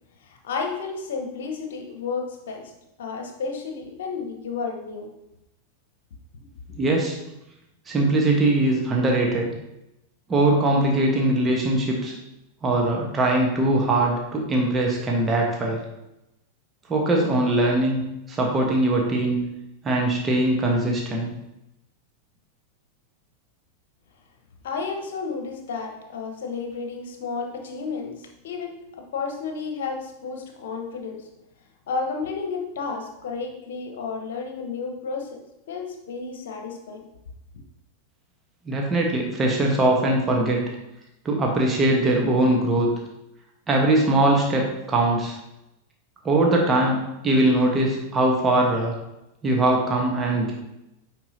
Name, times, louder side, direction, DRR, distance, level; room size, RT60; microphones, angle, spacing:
voice 1, 0.2-2.7 3.0-5.1 24.6-31.3 31.9-35.4 35.7-37.1, left 4 dB, 60° left, 3 dB, 1.1 m, -32 dB
voice 2, 6.8-7.1 7.9-9.5 10.3-12.1 12.6-15.8 16.9-18.0 18.3-19.4 19.8-21.3 38.7-40.6 41.2-42.9 43.7-45.4 46.2-48.9 49.4-50.5, right 2 dB, 20° right, -1 dB, 1.2 m, -21 dB
8.8 x 4.5 x 2.8 m, 0.90 s
figure-of-eight pair, 90°, 0 cm